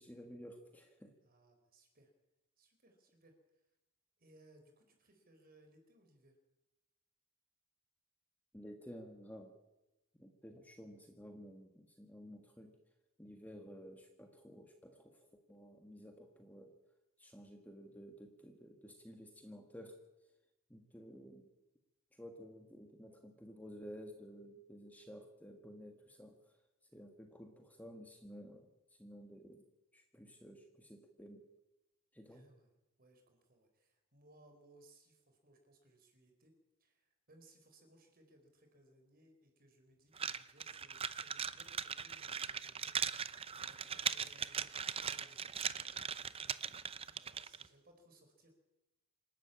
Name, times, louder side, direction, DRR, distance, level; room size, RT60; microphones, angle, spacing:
voice 1, 0.0-1.1 8.5-9.5 10.1-12.7 13.2-16.7 17.2-20.0 20.7-21.5 22.1-26.6 26.9-29.6 29.9-31.4 32.1-32.4, equal, 5° left, 4 dB, 1.8 m, -53 dB
voice 2, 1.2-2.1 2.6-3.3 4.2-6.4 32.3-32.7 33.0-36.5 36.8-48.6, right 1 dB, 40° right, 5 dB, 4.9 m, -66 dB
sound 1, 40.2-47.7, right 7 dB, 25° right, 0.6 m, -40 dB
27.5 x 12.0 x 8.7 m, 1.0 s
head